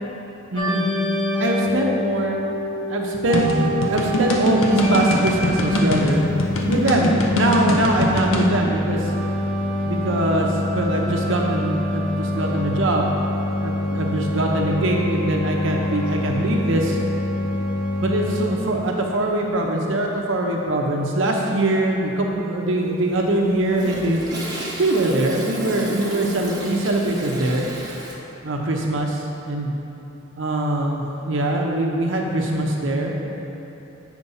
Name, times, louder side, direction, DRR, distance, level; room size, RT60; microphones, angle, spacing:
voice 1, 0.5-0.8 1.4-2.4 2.9-6.2 6.7-9.1 9.9-13.2 13.6-17.0 18.0-24.2 24.8-27.7 28.4-29.7 30.4-33.1, right 1 dB, 65° right, 0 dB, 0.7 m, -22 dB
sound 1, 0.6-18.5, left 1 dB, 20° left, 0.9 m, -25 dB
sound 2, 3.3-8.5, equal, 85° left, 0.8 m, -22 dB
Toilet flush, 22.9-28.1, right 1 dB, 20° right, 1.0 m, -33 dB
8.3 x 4.5 x 5.5 m, 3.0 s
head